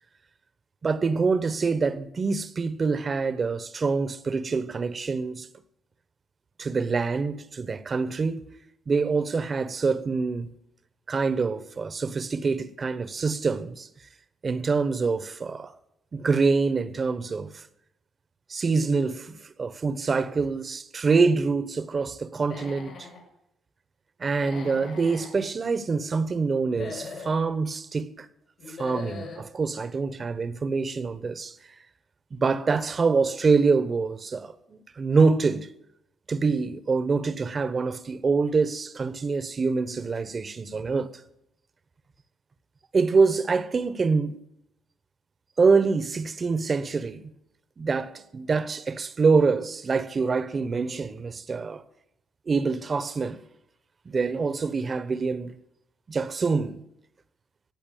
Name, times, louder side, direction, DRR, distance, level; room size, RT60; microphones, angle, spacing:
voice 1, 0.8-5.5 6.6-8.4 8.9-10.5 11.1-13.9 14.4-15.7 16.1-17.6 18.5-23.1 24.2-28.3 28.7-31.5 32.3-35.7 36.3-41.1 42.9-44.4 45.6-47.3 47.8-51.8 52.5-53.4 54.0-55.5 56.1-56.8, right 4 dB, 40° right, 1.1 m, -25 dB
Human voice / Animal, 22.4-23.2 24.3-25.3 26.6-27.4 28.6-29.4, left 4 dB, 65° left, 5.4 m, -40 dB
15.0 x 8.1 x 9.1 m
supercardioid pair, 70°, 0 cm